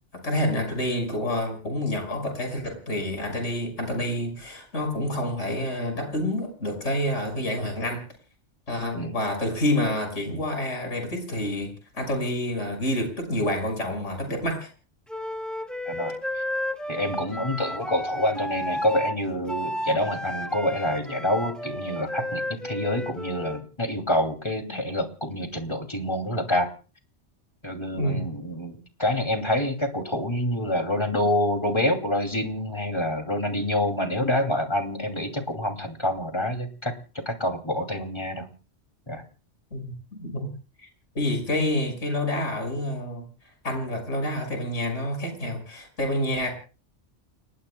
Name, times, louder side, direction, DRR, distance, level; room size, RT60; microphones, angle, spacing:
voice 1, 0.1-8.0 8.7-14.7 24.7-24.8 28.0-28.3 39.7-40.5 40.8-40.9 41.1-43.2 43.6-46.5, left 1 dB, 80° left, 5 dB, 6.1 m, -28 dB
Wind instrument woodwind instrument, 15.1-23.6, left 1 dB, ahead, 1.8 m, -32 dB
voice 2, 15.9-16.2 16.9-26.7 27.6-37.0 37.2-38.5 39.1-39.2, left 1 dB, 25° left, 4 dB, 2.7 m, -27 dB
29.5 x 20.0 x 2.2 m, 0.37 s
omnidirectional pair, 1.2 m